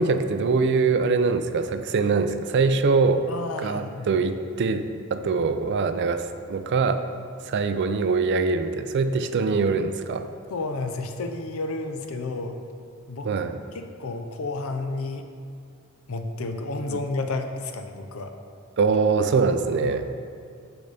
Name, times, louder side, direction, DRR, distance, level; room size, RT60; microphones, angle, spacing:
voice 1, 0.0-3.2 3.6-7.0 7.5-10.3 13.2-13.5 16.9-17.0 18.8-20.1, right 4 dB, 55° right, 10 dB, 0.4 m, -23 dB
voice 2, 3.3-4.1 10.5-12.6 13.1-13.3 13.7-15.2 16.1-18.3 19.8-19.9, left 3 dB, 80° left, 6 dB, 0.6 m, -31 dB
11.5 x 3.9 x 3.4 m, 2.3 s
head